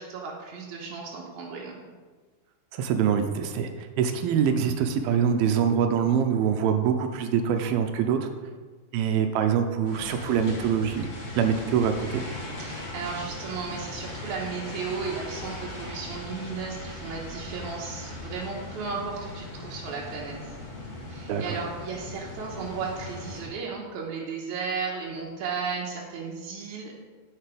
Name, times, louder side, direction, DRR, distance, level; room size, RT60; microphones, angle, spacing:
voice 1, 0.0-1.8 12.6-20.6 21.1-26.9, right 5 dB, 65° right, -3 dB, 2.0 m, -35 dB
voice 2, 2.7-8.3 8.9-11.1 11.4-12.2 21.3-21.6, right 7 dB, 80° right, 6 dB, 2.4 m, -24 dB
sound 1, 9.8-23.5, left 2 dB, 60° left, 3.8 m, -39 dB
10.5 x 6.8 x 5.1 m, 1.4 s
omnidirectional pair, 4.5 m